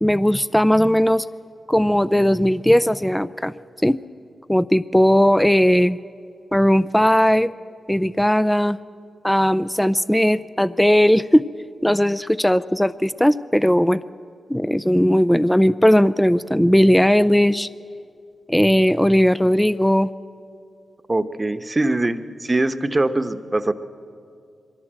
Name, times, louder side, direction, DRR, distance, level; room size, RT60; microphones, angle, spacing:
voice 1, 0.0-1.2 1.7-3.5 3.8-4.0 4.5-6.0 6.5-7.5 7.9-8.8 9.2-11.4 11.8-14.0 14.5-17.7 18.5-20.1, equal, 5° left, 16 dB, 0.5 m, -17 dB
voice 2, 21.1-23.7, right 2 dB, 30° right, 9 dB, 1.0 m, -22 dB
22.5 x 16.0 x 7.6 m, 2.4 s
supercardioid pair, 45°, 0 cm